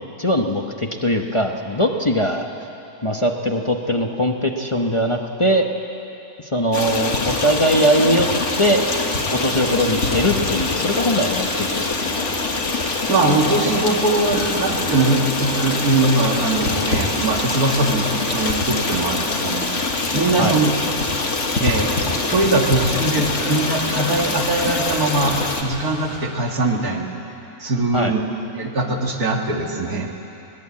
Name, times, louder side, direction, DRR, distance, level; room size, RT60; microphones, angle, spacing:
voice 1, 0.0-2.5 3.0-5.7 6.4-8.3 8.6-8.8 9.3-12.3 20.4-20.6 27.9-28.1, equal, 25° left, 2 dB, 0.9 m, -21 dB
Stream, 6.7-25.6, left 3 dB, 55° left, 1.9 m, -24 dB
sound 1, 7.4-26.2, equal, 35° right, 6.3 m, -37 dB
voice 2, 13.1-19.6 20.1-20.7 21.6-27.1 27.6-28.2 28.5-30.1, right 2 dB, 90° right, 1 dB, 2.5 m, -21 dB
21.5 x 18.5 x 8.5 m, 2.9 s
omnidirectional pair, 1.5 m